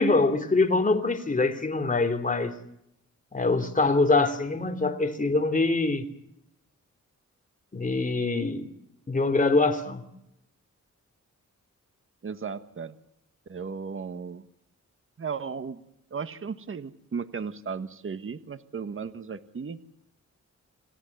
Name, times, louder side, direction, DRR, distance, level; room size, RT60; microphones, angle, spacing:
voice 1, 0.0-2.5 3.3-6.0 7.7-8.7 9.1-10.0, left 3 dB, 25° left, 3.1 m, -24 dB
voice 2, 12.2-12.9 13.5-14.5 15.2-15.8 16.1-19.8, right 5 dB, 45° right, 1.5 m, -35 dB
28.5 x 16.5 x 9.6 m
wide cardioid pair, 120°, 30 cm